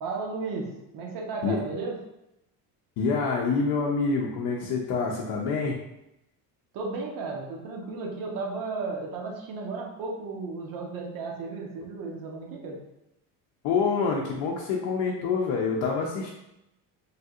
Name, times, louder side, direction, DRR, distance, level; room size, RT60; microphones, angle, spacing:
voice 1, 0.0-2.0 6.7-12.8, right 3 dB, 60° right, 0 dB, 0.8 m, -34 dB
voice 2, 3.0-5.8 13.6-16.3, left 4 dB, 70° left, -1 dB, 0.6 m, -26 dB
3.3 x 2.7 x 2.4 m, 0.88 s
cardioid pair, 160°, 39 cm